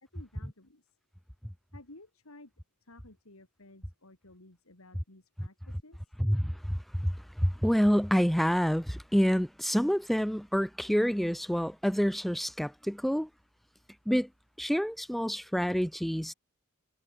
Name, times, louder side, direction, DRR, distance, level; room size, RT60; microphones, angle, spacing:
voice 1, 0.1-0.9 1.7-2.5 2.8-6.1, left 2 dB, 90° left, 3.3 m, -55 dB
voice 2, 6.2-7.1 7.4-13.3 14.1-14.3 14.6-16.3, equal, ahead, 0.4 m, -27 dB
head